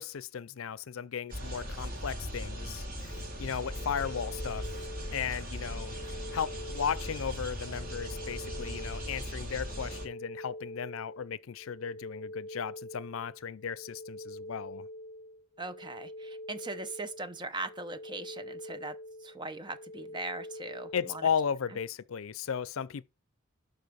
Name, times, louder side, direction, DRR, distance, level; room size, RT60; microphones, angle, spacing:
voice 1, 0.0-4.7 5.1-14.9 20.9-23.0, left 7 dB, 85° left, 0.5 m, -35 dB
sound 1, 1.3-10.1, equal, 45° right, 3.3 m, -39 dB
sound 2, 3.1-21.9, left 1 dB, 55° left, 0.8 m, -46 dB
voice 2, 15.6-19.0 19.2-21.3, right 2 dB, 20° right, 0.9 m, -40 dB
12.0 x 4.6 x 6.2 m
head